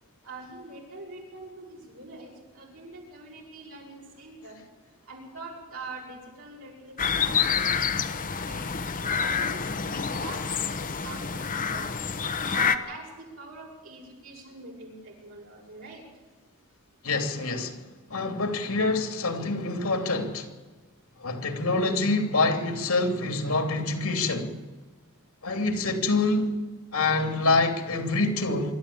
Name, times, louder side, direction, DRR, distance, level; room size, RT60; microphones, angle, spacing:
voice 1, 0.2-4.6 5.1-8.1 8.4-8.7 9.2-12.0 12.5-16.0, right 3 dB, 65° right, -1 dB, 6.7 m, -44 dB
sound 1, 7.0-12.8, left 6 dB, 40° left, 1.0 m, -28 dB
voice 2, 17.0-17.8 18.1-20.5 21.2-24.5 25.4-26.6 26.9-28.7, left 3 dB, 75° left, 5 dB, 2.9 m, -26 dB
25.5 x 12.5 x 8.7 m, 1.3 s
head